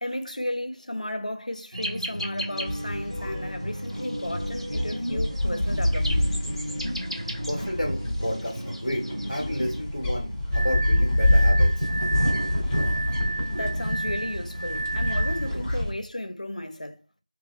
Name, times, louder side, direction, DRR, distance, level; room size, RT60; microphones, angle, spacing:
voice 1, 0.0-6.4 13.5-17.0, left 1 dB, 65° left, 0.6 m, -34 dB
sound 1, 1.7-9.8, equal, 50° right, 1.3 m, -34 dB
sound 2, 2.7-15.9, left 1 dB, 15° right, 0.9 m, -26 dB
voice 2, 7.5-11.9, equal, 5° left, 0.5 m, -31 dB
Glass, 10.5-15.6, right 3 dB, 85° right, 0.9 m, -32 dB
3.1 x 2.4 x 2.5 m
figure-of-eight pair, 175°, 4 cm